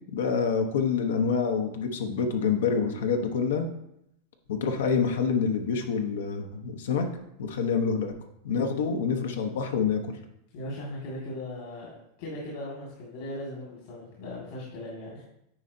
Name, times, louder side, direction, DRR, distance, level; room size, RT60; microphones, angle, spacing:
voice 1, 0.1-3.7 4.5-7.0 7.4-8.1 8.4-10.0, left 6 dB, 90° left, 5 dB, 0.8 m, -27 dB
voice 2, 10.5-11.9 12.2-15.2, left 1 dB, 65° left, -4 dB, 1.7 m, -38 dB
8.8 x 4.3 x 2.7 m, 0.78 s
supercardioid pair, 145°, 0 cm